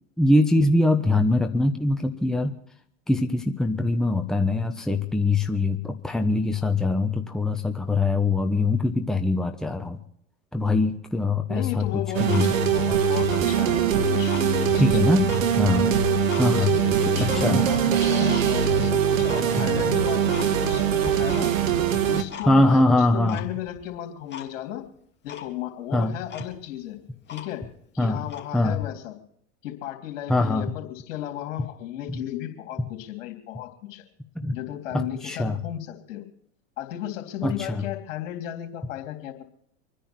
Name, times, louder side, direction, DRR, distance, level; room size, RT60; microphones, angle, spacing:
voice 1, 0.2-2.5 3.1-10.0 10.5-12.6 14.7-15.2 15.6-15.9 16.4-16.7 17.2-17.6 22.4-23.4 25.9-26.1 28.0-28.2 28.5-28.8 30.3-30.7 32.1-32.2 34.3-34.5 34.9-35.6 37.4-37.9, left 2 dB, ahead, 5 dB, 1.1 m, -22 dB
voice 2, 11.5-15.3 15.6-15.9 16.5-21.5 22.1-24.8 25.2-27.0 27.3-27.7 27.9-29.1 29.6-34.0 34.5-36.3 36.8-39.4, left 12 dB, 65° left, 3 dB, 3.6 m, -34 dB
Tick-tock, 11.9-12.9 13.2-14.5 14.9-16.5 16.9-17.5 17.9-18.5 18.8-18.9 19.2-19.5 19.9-20.0 20.3-20.8 21.0-21.7 22.0-22.8 23.3-23.9 24.3-24.5 24.8-24.9 25.3-25.5 26.0-26.1 26.3-27.8 28.2-28.5, left 7 dB, 25° left, 2.7 m, -40 dB
sound 1, 12.1-22.2, right 7 dB, 80° right, 1.6 m, -22 dB
26.0 x 10.0 x 4.6 m, 0.64 s
hypercardioid pair, 95°, 39 cm